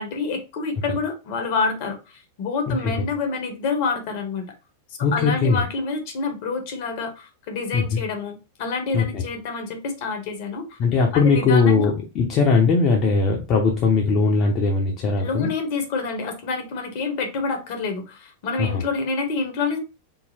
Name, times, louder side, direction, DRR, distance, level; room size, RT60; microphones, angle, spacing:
voice 1, 0.0-4.4 5.1-10.8 11.1-11.9 15.2-19.8, left 4 dB, 60° left, 5 dB, 1.2 m, -27 dB
voice 2, 2.7-3.1 5.0-5.6 7.7-8.0 8.9-9.2 10.8-15.5 18.6-18.8, left 4 dB, 40° left, 0 dB, 0.9 m, -20 dB
3.9 x 2.1 x 4.1 m, 0.28 s
hypercardioid pair, 100°, 0 cm